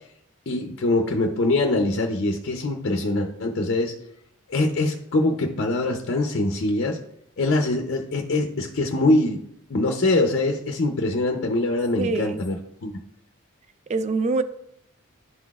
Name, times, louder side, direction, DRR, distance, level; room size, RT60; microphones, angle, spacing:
voice 1, 0.5-3.9 4.5-7.0 7.4-9.4 9.7-12.6 12.8-12.9, left 2 dB, 50° left, 3 dB, 0.6 m, -23 dB
voice 2, 12.0-12.4 13.9-14.4, right 3 dB, 30° right, 12 dB, 0.3 m, -24 dB
11.0 x 4.0 x 2.3 m, 0.75 s
head